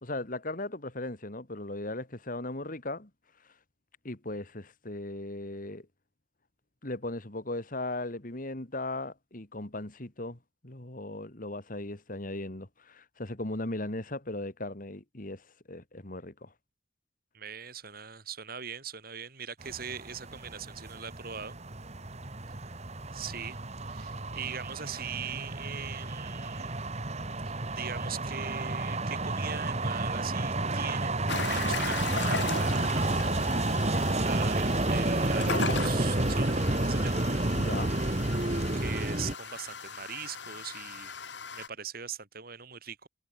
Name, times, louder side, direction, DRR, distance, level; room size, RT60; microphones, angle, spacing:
voice 1, 0.0-3.1 4.0-5.9 6.8-16.5 37.5-38.0, left 2 dB, 50° left, 2.4 m, -37 dB
voice 2, 17.3-21.6 23.1-23.6 23.8-26.9 27.5-31.2 31.5-33.3 34.2-37.2 38.8-41.2 41.5-43.1, right 7 dB, 55° right, 5.3 m, -41 dB
sound 1, 19.6-39.4, right 2 dB, 35° right, 2.0 m, -30 dB
sound 2, 31.3-41.7, left 5 dB, 75° left, 4.5 m, -38 dB
head